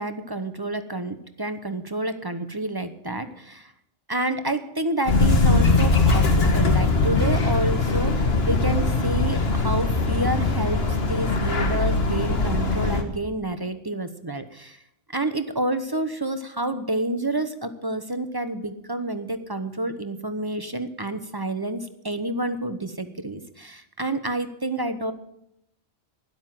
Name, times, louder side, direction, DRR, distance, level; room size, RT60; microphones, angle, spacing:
voice 1, 0.0-3.7 4.1-10.8 11.1-14.8 15.1-25.1, right 1 dB, 20° right, 9 dB, 0.8 m, -29 dB
sound 1, 5.1-13.0, left 3 dB, 55° left, 1.7 m, -21 dB
12.5 x 10.5 x 7.5 m, 0.79 s
omnidirectional pair, 1.2 m